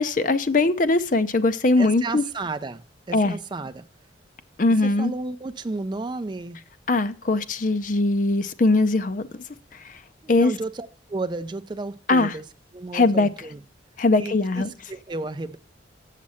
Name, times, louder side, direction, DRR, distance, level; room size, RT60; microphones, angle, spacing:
voice 1, 0.0-2.2 3.1-3.4 4.6-5.1 6.9-9.4 9.8-10.0 10.3-10.5 12.1-12.3 12.9-13.3 14.0-14.7, left 2 dB, 45° left, 0.5 m, -21 dB
voice 2, 1.8-3.9 4.8-6.6 10.2-12.4 12.7-13.6 14.2-15.6, right 3 dB, 25° right, 0.4 m, -32 dB
7.5 x 7.3 x 5.6 m
head